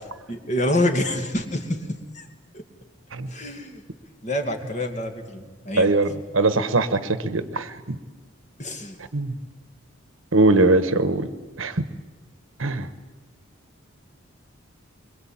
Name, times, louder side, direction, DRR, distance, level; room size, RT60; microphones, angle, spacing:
voice 1, 0.3-2.3 2.5-2.6 3.3-3.8 4.2-5.9 8.6-9.0, left 1 dB, 35° left, 5 dB, 2.4 m, -27 dB
voice 2, 5.8-7.9 9.1-9.3 10.3-11.3 11.6-11.9 12.6-12.9, right 2 dB, 70° right, 12 dB, 1.2 m, -21 dB
23.0 x 22.5 x 8.8 m, 1.3 s
head